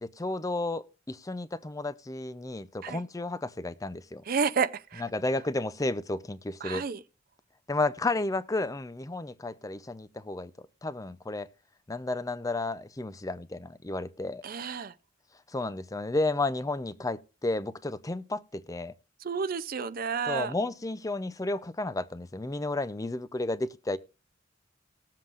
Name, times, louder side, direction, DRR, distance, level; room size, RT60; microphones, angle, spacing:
voice 1, 0.0-4.2 5.0-6.8 7.7-10.5 10.8-11.5 11.9-14.4 15.5-18.9 20.3-24.0, left 2 dB, 15° left, 0.5 m, -32 dB
voice 2, 4.3-5.0 6.6-7.0 14.4-14.9 19.2-20.5, right 6 dB, 45° right, 0.5 m, -30 dB
19.5 x 7.5 x 2.4 m
head